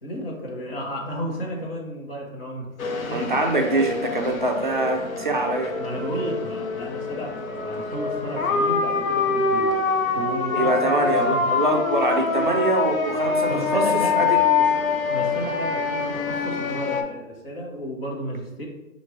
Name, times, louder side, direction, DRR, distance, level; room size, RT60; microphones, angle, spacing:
voice 1, 0.0-2.7 3.1-3.2 3.7-3.8 4.9-5.1 5.8-9.7 10.1-11.5 13.5-14.7 15.1-18.7, equal, 45° left, -2 dB, 1.1 m, -33 dB
sound 1, 2.8-17.0, left 5 dB, 85° left, 0.8 m, -25 dB
voice 2, 3.1-5.8 10.5-13.8 14.1-14.4, right 2 dB, 40° right, 2 dB, 0.4 m, -24 dB
4.5 x 2.5 x 3.2 m, 0.94 s
hypercardioid pair, 170°, 40 cm